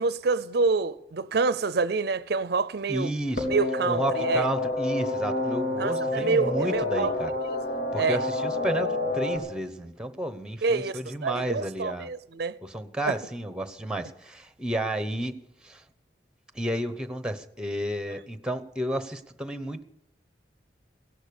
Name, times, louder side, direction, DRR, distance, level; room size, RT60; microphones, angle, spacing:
voice 1, 0.0-3.1 3.5-4.5 5.8-7.1 7.5-7.6 7.9-8.2 10.6-12.5 13.1-13.2, right 4 dB, 65° right, 0.5 m, -27 dB
voice 2, 2.9-3.5 3.9-7.4 7.9-12.1 12.6-15.4 15.6-15.8 16.5-19.8, right 1 dB, 5° right, 0.9 m, -32 dB
sound 1, 3.4-9.4, left 2 dB, 70° left, 3.8 m, -28 dB
17.0 x 11.5 x 7.0 m
head